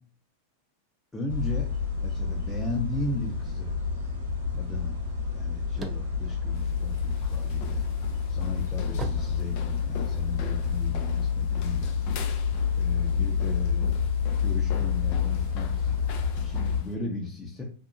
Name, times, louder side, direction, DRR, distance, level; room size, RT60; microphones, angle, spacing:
voice 1, 1.1-1.7 2.0-3.7 4.5-5.0 5.3-7.8 8.3-11.9 12.7-13.9 14.4-16.0 16.3-17.6, left 3 dB, 10° left, -4 dB, 0.7 m, -35 dB
sound 1, 1.3-16.8, left 6 dB, 80° right, 1.3 m, -28 dB
sound 2, 5.6-7.5 7.9-10.2, right 4 dB, 25° right, 0.4 m, -40 dB
sound 3, 6.5-16.9, left 5 dB, 55° left, 0.5 m, -43 dB
2.7 x 2.2 x 2.5 m, 0.42 s
hypercardioid pair, 100°, 0 cm